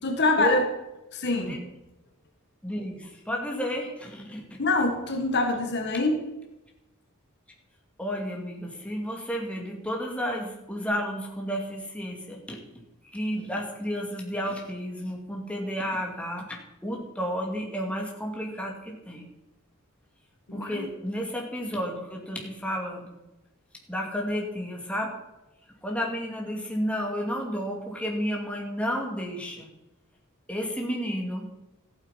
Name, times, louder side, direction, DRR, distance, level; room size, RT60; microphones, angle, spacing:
voice 1, 0.0-0.7 1.1-1.6 4.6-6.3 20.5-20.9, left 2 dB, 50° left, 4 dB, 1.7 m, -25 dB
voice 2, 2.6-4.6 8.0-12.6 13.1-16.5 16.8-19.3 20.5-23.1 23.9-25.2 25.8-29.7 30.5-31.5, equal, 5° left, 0 dB, 2.5 m, -32 dB
14.0 x 8.9 x 5.8 m, 0.97 s
head